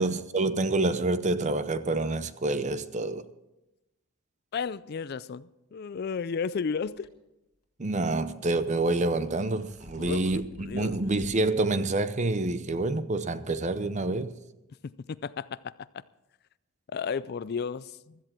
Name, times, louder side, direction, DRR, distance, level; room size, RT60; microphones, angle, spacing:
voice 1, 0.0-3.3 7.8-14.3, right 2 dB, 35° right, 0.7 m, -27 dB
voice 2, 4.5-7.1 10.0-11.0 14.8-16.0 16.9-18.2, left 5 dB, 50° left, 0.4 m, -34 dB
sound 1, 6.8-7.1 9.1-11.5 11.9-12.0 12.8-12.9, left 1 dB, 85° left, 1.5 m, -50 dB
15.5 x 13.5 x 4.5 m
head